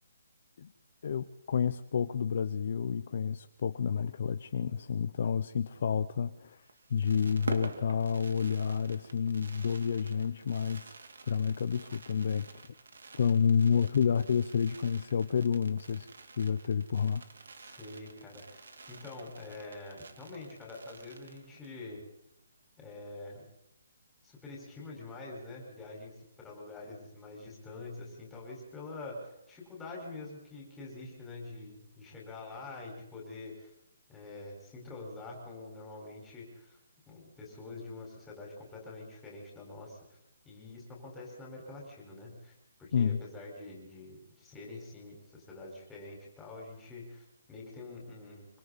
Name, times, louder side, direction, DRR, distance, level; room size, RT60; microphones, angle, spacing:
voice 1, 1.0-6.6 6.9-11.0 11.3-12.5 13.2-16.1 16.4-17.2 42.9-43.2, left 7 dB, 40° left, 10 dB, 0.8 m, -29 dB
Fireworks, 6.6-21.8 22.1-22.2 22.4-22.7, right 4 dB, 75° right, 3.1 m, -48 dB
voice 2, 17.6-22.0 22.8-23.5 24.2-33.7 34.1-36.8 37.1-40.0 40.4-48.5, left 2 dB, 5° left, -2 dB, 5.0 m, -46 dB
25.5 x 25.0 x 4.2 m, 0.83 s
hypercardioid pair, 175°, 0 cm